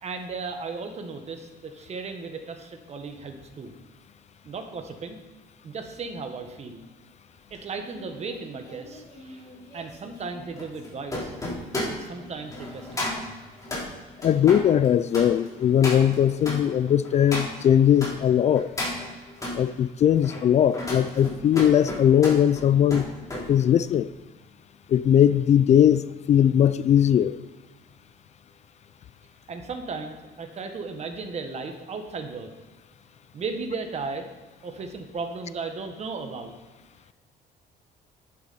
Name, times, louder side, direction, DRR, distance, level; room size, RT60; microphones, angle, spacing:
voice 1, 0.0-3.7 4.4-5.2 5.6-6.8 7.5-9.5 9.7-11.3 11.9-13.3 29.5-32.5 33.3-34.3 34.6-36.5, right 4 dB, 40° right, 6 dB, 1.5 m, -35 dB
sound 1, 7.5-18.1 18.5-19.6 20.1-23.5 23.8-24.1, left 1 dB, 20° left, 4.1 m, -34 dB
voice 2, 14.2-18.7 19.6-23.0 23.5-24.1 24.9-27.4, left 9 dB, 40° left, 15 dB, 0.4 m, -20 dB
11.0 x 9.1 x 4.3 m, 1.3 s
cardioid pair, 110°, 17 cm